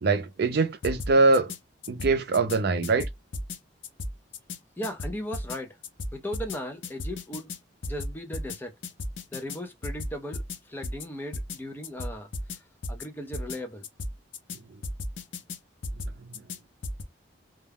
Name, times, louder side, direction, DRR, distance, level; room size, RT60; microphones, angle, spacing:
voice 1, 0.0-1.5 1.9-3.1, right 3 dB, 60° right, 0.5 m, -23 dB
sound 1, 0.8-1.6 1.8-2.6 2.8-3.6 3.8-4.6 4.8-5.6 5.8-6.6 6.8-7.6 7.8-8.6 8.8-9.6 9.8-10.6 10.8-11.0 11.3-11.6 11.8-12.6 12.8-13.1 13.3-13.6 13.8-14.6 14.8-15.6 15.8-16.6 16.8-17.0, left 2 dB, 80° left, 0.5 m, -34 dB
voice 2, 4.8-5.8 6.1-7.5 7.9-8.7 9.3-13.9, equal, 10° left, 0.5 m, -37 dB
2.3 x 2.1 x 3.3 m
head